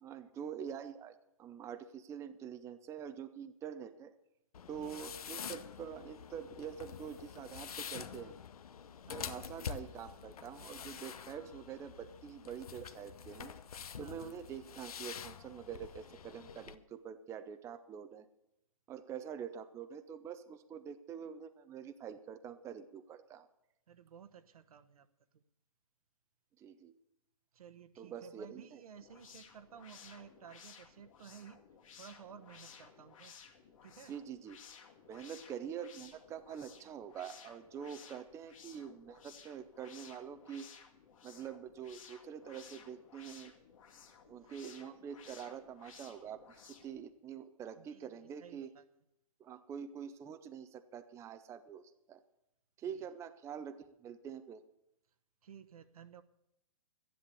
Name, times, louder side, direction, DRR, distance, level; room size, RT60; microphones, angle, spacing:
voice 1, 0.0-4.1 4.7-8.4 9.1-13.5 14.0-18.3 18.9-23.5 26.6-27.0 28.0-28.8 34.1-34.6 35.1-40.7 41.2-43.5 44.3-48.7 49.4-52.2 52.8-54.6, right 8 dB, 15° right, 9 dB, 0.6 m, -46 dB
sound 1, 4.5-16.8, left 7 dB, 80° left, 0.9 m, -47 dB
voice 2, 14.0-14.3 23.9-25.1 25.3-25.4 27.5-31.6 32.0-33.3 33.8-34.2 44.4-44.5 47.8-48.8 52.9-53.0 55.4-56.2, right 8 dB, 75° right, 11 dB, 1.2 m, -55 dB
sound 2, 29.0-47.0, left 7 dB, 65° left, 2.1 m, -57 dB
12.5 x 10.5 x 6.9 m, 0.85 s
hypercardioid pair, 140°, 19 cm